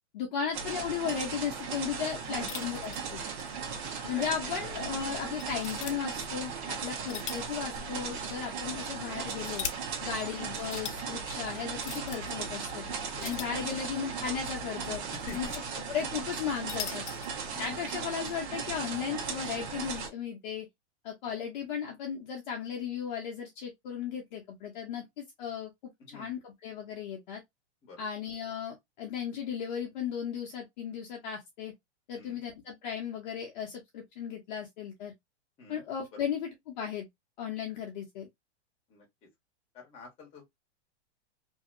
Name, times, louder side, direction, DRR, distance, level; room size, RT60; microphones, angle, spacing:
voice 1, 0.1-3.2 4.1-9.7 10.0-12.8 13.2-15.0 15.3-15.5 15.9-17.0 17.6-20.7 21.0-25.7 26.1-27.4 28.0-31.7 32.1-35.1 35.7-37.1 37.4-38.3, left 7 dB, 40° left, 0.8 m, -36 dB
sound 1, 0.5-20.1, right 5 dB, 65° right, 1.2 m, -37 dB
voice 2, 2.2-2.7 3.8-4.7 6.9-7.1 9.9-10.3 13.1-13.4 15.1-15.5 17.5-17.8 21.2-21.4 26.0-26.3 27.8-28.0 32.1-32.4 35.6-35.8 38.9-39.0 39.7-40.5, left 3 dB, 15° left, 1.1 m, -48 dB
sound 2, 2.5-3.5 3.8-3.9 4.5-4.6 5.4-6.0 6.9-7.6 7.9-8.0 8.9-9.8 10.6-11.0 11.8-12.2 13.2-14.0 14.9-15.6 16.4-17.3, left 8 dB, 85° left, 0.9 m, -40 dB
2.8 x 2.7 x 2.5 m
supercardioid pair, 170°, 34 cm